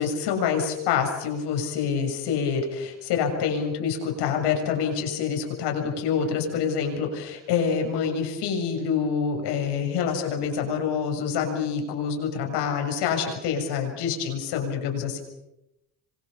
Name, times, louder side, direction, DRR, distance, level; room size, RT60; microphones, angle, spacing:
voice 1, 0.0-15.2, left 6 dB, 90° left, 3 dB, 7.1 m, -26 dB
27.0 x 24.0 x 7.5 m, 0.91 s
cardioid pair, 90°, 40 cm